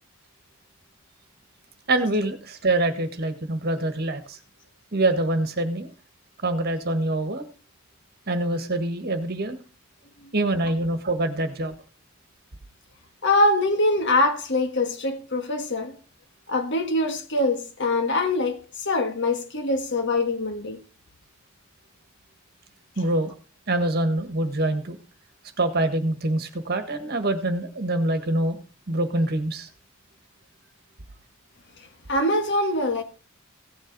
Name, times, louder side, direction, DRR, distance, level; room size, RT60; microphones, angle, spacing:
voice 1, 1.9-4.4 4.9-5.9 6.4-7.4 8.3-9.6 10.3-11.7 23.0-23.3 23.7-25.0 25.6-28.6 28.9-29.7, right 2 dB, 50° right, 1.6 m, -25 dB
voice 2, 13.2-16.0 16.5-20.8 32.1-33.0, left 2 dB, 55° left, 1.5 m, -23 dB
16.0 x 7.4 x 4.1 m
head